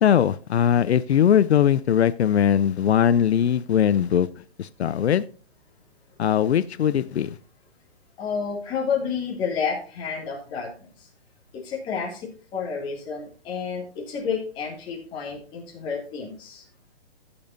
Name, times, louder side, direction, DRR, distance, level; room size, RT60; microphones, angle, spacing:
voice 1, 0.0-4.3 4.6-5.2 6.2-7.4, left 9 dB, 85° left, 16 dB, 0.6 m, -20 dB
voice 2, 8.2-10.7 11.0-11.1 11.5-16.6, left 6 dB, 15° left, -1 dB, 2.3 m, -30 dB
15.5 x 7.0 x 2.6 m, 0.40 s
hypercardioid pair, 165°, 32 cm